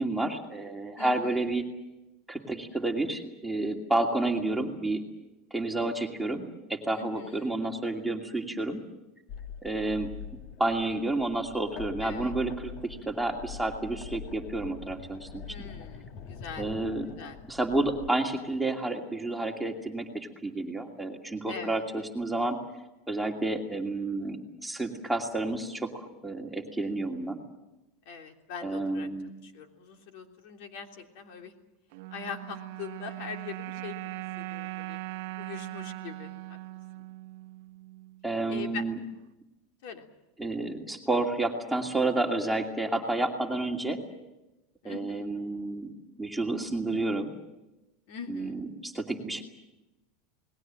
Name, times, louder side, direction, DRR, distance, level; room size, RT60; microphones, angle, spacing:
voice 1, 0.0-1.6 2.3-5.0 5.5-8.8 9.6-10.1 10.6-15.4 16.6-17.1 17.5-22.6 23.1-27.4 28.6-29.3 38.2-39.0 40.4-44.0 44.8-45.9 46.2-47.3 48.3-49.4, right 2 dB, 5° right, 1 dB, 2.5 m, -30 dB
voice 2, 1.0-1.5 6.9-7.6 12.0-12.3 15.4-16.7 17.2-17.4 21.5-21.8 28.0-29.1 29.4-31.5 32.1-34.1 34.4-35.0 35.4-36.6 37.0-37.1 38.5-38.8 39.8-40.1 44.8-45.3 48.1-48.6, left 6 dB, 65° left, 4 dB, 3.2 m, -42 dB
sound 1, 9.3-18.1, left 7 dB, 45° left, 1.3 m, -44 dB
sound 2, 31.9-38.3, right 19 dB, 70° right, 0.9 m, -40 dB
28.0 x 20.0 x 7.6 m, 1.0 s
supercardioid pair, 145°, 0 cm